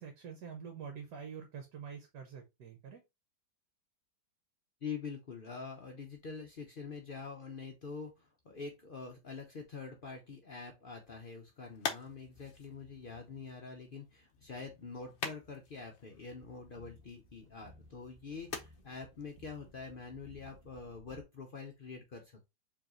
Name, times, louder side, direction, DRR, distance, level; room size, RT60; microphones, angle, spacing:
voice 1, 0.0-3.0, right 7 dB, 65° right, 4 dB, 1.4 m, -46 dB
voice 2, 4.8-22.5, left 5 dB, 85° left, 2 dB, 0.4 m, -45 dB
sound 1, 10.9-20.7, left 5 dB, 55° left, 0.8 m, -47 dB
sound 2, 16.2-21.2, equal, 40° right, 0.5 m, -60 dB
4.7 x 3.2 x 3.0 m, 0.23 s
omnidirectional pair, 2.0 m